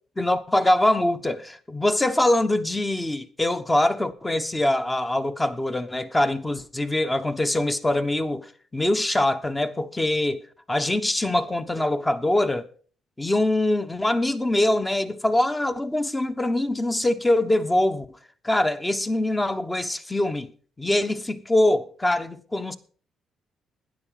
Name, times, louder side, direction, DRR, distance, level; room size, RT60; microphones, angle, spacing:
voice 1, 0.2-10.4 10.7-12.7 13.2-18.1 18.4-20.5 20.8-22.8, left 1 dB, 15° left, 1.2 m, -23 dB
12.5 x 10.0 x 5.0 m
cardioid pair, 90°, 0 cm